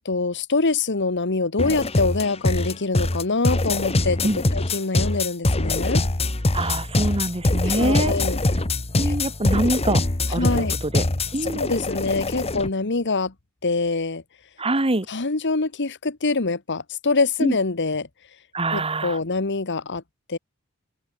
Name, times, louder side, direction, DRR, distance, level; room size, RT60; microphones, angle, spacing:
voice 1, 0.0-6.0 7.7-8.4 9.0-9.1 10.4-10.8 11.5-13.3 13.6-14.2 15.1-18.1 18.7-20.0 20.3-20.4, left 3 dB, 55° left, 1.5 m, -24 dB
sound 1, 1.6-12.7, left 2 dB, 30° left, 1.3 m, -23 dB
voice 2, 6.5-8.1 8.9-10.0 10.3-11.0 11.3-11.7 14.6-15.1 17.4-17.5 18.5-19.2, right 2 dB, 25° right, 1.5 m, -24 dB
open air
head